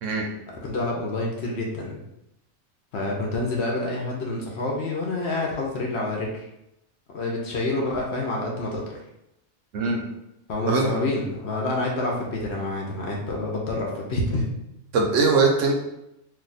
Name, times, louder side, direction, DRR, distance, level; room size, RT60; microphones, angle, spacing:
voice 1, 0.6-2.0 2.9-6.5 7.1-8.8 10.5-14.4, left 2 dB, 60° left, -2 dB, 0.8 m, -27 dB
voice 2, 14.9-15.7, right 4 dB, 70° right, 1 dB, 0.9 m, -21 dB
2.7 x 2.2 x 3.9 m, 0.85 s
omnidirectional pair, 1.4 m